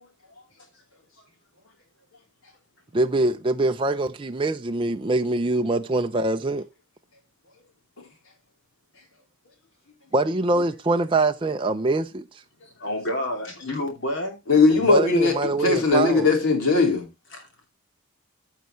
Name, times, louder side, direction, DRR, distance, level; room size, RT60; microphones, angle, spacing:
voice 1, 0.3-0.7 1.2-1.3 10.5-10.6 12.6-14.4 17.3-17.5, left 1 dB, 55° left, 2.8 m, -31 dB
voice 2, 2.9-6.6 10.1-12.2 14.9-16.3, right 2 dB, 25° right, 0.4 m, -24 dB
voice 3, 14.5-17.1, left 3 dB, 85° left, 3.4 m, -19 dB
15.0 x 5.7 x 3.1 m
head